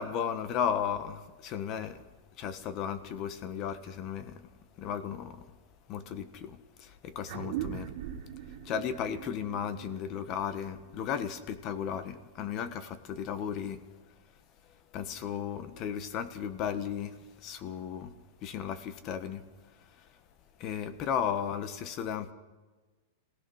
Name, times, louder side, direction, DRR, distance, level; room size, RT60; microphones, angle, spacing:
voice 1, 0.0-2.0 2.4-4.4 4.8-5.5 5.9-7.9 8.6-13.8 14.9-18.1 18.4-19.5 20.6-22.3, left 8 dB, 30° left, 1.4 m, -35 dB
sound 1, 7.3-12.1, right 11 dB, 50° right, 2.3 m, -41 dB
26.0 x 18.0 x 6.4 m
supercardioid pair, 160°, 0 cm